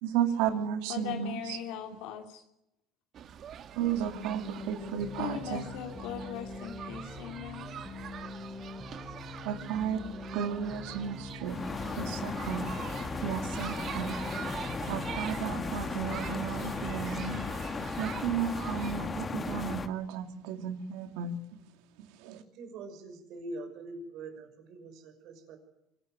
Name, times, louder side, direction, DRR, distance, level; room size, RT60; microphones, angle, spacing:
voice 1, 0.0-1.6 3.8-5.7 9.4-10.0 10.3-11.6 11.9-12.7 13.2-14.2 14.9-17.5 18.0-21.4 22.0-22.4, right 8 dB, 90° right, 2.5 m, -33 dB
voice 2, 0.9-2.4 5.2-7.7, left 9 dB, 80° left, 2.7 m, -39 dB
sound 1, 3.1-19.0, right 9 dB, 45° right, 1.4 m, -44 dB
sound 2, 4.0-17.6, left 3 dB, 5° left, 4.8 m, -44 dB
sound 3, 11.4-19.9, left 4 dB, 25° left, 2.0 m, -36 dB
voice 3, 22.5-25.6, right 2 dB, 65° right, 5.9 m, -43 dB
25.0 x 18.0 x 9.3 m
cardioid pair, 125°, 0 cm